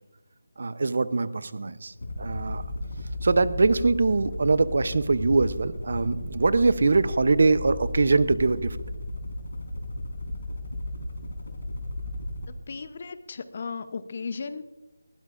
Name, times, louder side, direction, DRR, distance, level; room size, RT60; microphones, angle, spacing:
voice 1, 0.6-1.9 2.2-2.6 3.2-8.8, right 3 dB, 45° right, 16 dB, 0.6 m, -23 dB
sound 1, 1.9-12.6, left 1 dB, 65° left, 3.4 m, -35 dB
voice 2, 12.7-14.6, left 5 dB, 30° left, 13 dB, 0.6 m, -35 dB
20.0 x 16.0 x 2.5 m, 1.0 s
figure-of-eight pair, 175°, 0 cm